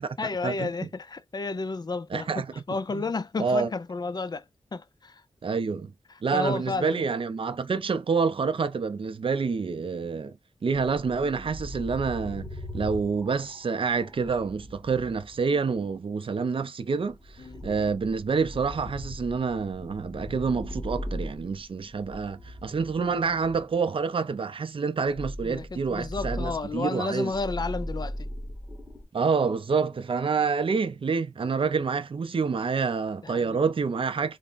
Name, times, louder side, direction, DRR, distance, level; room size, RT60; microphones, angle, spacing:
voice 1, 0.2-4.4 4.7-5.2 6.1-7.0 17.4-17.7 25.4-28.3 30.4-30.5 33.2-33.6, left 3 dB, 40° left, 0.4 m, -32 dB
voice 2, 2.1-2.5 2.9-3.0 3.4-3.7 5.4-5.9 6.2-10.4 10.6-12.5 12.7-27.3 29.1-34.4, right 5 dB, 55° right, 0.5 m, -27 dB
sound 1, 10.7-16.0 17.1-23.9 25.1-29.0, equal, 5° left, 1.2 m, -39 dB
3.4 x 2.1 x 3.9 m
wide cardioid pair, 100°, 11 cm